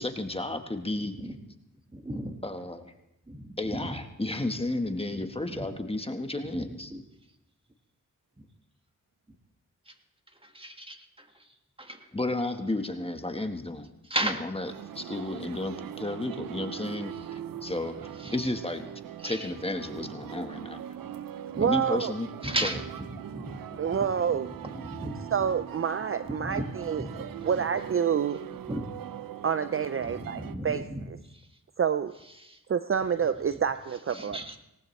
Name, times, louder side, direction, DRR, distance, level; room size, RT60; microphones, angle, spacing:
voice 1, 0.0-1.1 2.4-2.9 3.6-6.9 12.1-13.9 14.2-17.1 17.6-17.9 18.3-18.8 19.2-20.8 21.6-22.3 22.6-22.7, left 2 dB, 15° left, 6 dB, 1.4 m, -32 dB
voice 2, 0.9-1.4 1.9-2.4 3.3-4.0 4.5-4.6 5.5-5.7 6.5-7.0 9.8-9.9 10.3-12.1 14.0-14.5 18.2-18.5 19.2-19.5 19.9-20.3 21.0-21.1 21.5-21.7 22.4-25.3 26.2-27.5 28.6-28.9 30.0-31.5 32.4-32.6 34.1-34.6, right 1 dB, 15° right, 5 dB, 1.8 m, -37 dB
sound 1, 14.6-30.5, right 10 dB, 85° right, 0.7 m, -41 dB
voice 3, 21.6-22.1 23.8-24.5 25.3-28.4 29.4-30.8 31.8-32.1 32.7-34.4, right 7 dB, 40° right, 11 dB, 0.5 m, -28 dB
18.5 x 18.0 x 3.2 m, 0.86 s
cardioid pair, 60°, 33 cm